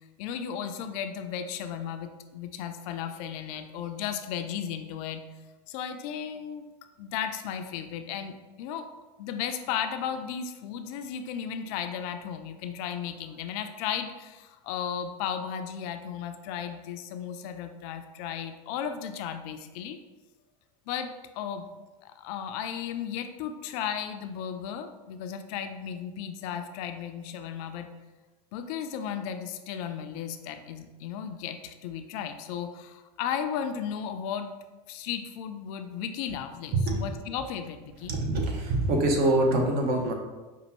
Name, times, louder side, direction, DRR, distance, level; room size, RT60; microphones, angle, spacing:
voice 1, 0.2-5.2 5.7-6.6 7.0-8.9 9.2-20.0 20.9-21.7 22.0-27.9 28.5-34.5 34.9-38.1, left 8 dB, 60° left, 8 dB, 0.4 m, -35 dB
voice 2, 38.1-40.1, right 2 dB, 50° right, 1 dB, 0.9 m, -24 dB
5.2 x 2.4 x 2.9 m, 1.2 s
hypercardioid pair, 100°, 21 cm